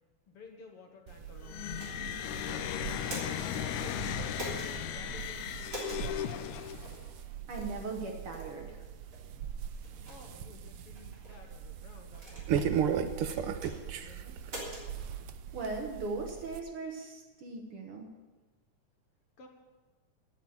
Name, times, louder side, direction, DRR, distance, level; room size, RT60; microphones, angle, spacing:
voice 1, 0.3-1.7 2.2-2.9 3.5-6.6 9.4-9.5 10.1-14.4 19.4-19.5, left 4 dB, 60° left, 3 dB, 1.8 m, -54 dB
sound 1, 1.1-16.6, right 8 dB, 85° right, 1.2 m, -38 dB
sound 2, 1.4-7.1, left 10 dB, 90° left, 2.0 m, -36 dB
sound 3, 1.7-2.2 2.9-3.6 4.3-4.7 5.7-6.0 6.8-7.0 7.6-7.8 8.3-8.5 9.1-9.2 9.8-10.2 10.9-11.3 12.1-12.7 13.2-13.7 14.4-14.9, equal, 30° right, 3.7 m, -43 dB
voice 2, 7.5-8.8 15.5-18.1, right 3 dB, 55° right, 2 dB, 1.9 m, -39 dB
9.6 x 9.3 x 8.7 m, 1.3 s
omnidirectional pair, 3.3 m